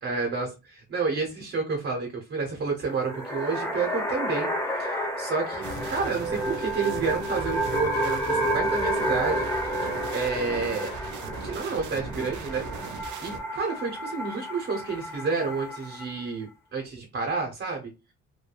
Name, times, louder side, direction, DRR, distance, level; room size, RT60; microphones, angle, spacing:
voice 1, 0.0-10.9 11.4-12.7 13.2-17.9, right 4 dB, 40° right, 1 dB, 0.9 m, -30 dB
sound 1, 2.9-16.2, equal, 10° left, 0.7 m, -31 dB
sound 2, 5.6-13.4, right 4 dB, 75° right, 0.6 m, -36 dB
3.2 x 2.1 x 2.3 m, 0.27 s
cardioid pair, 90°, 30 cm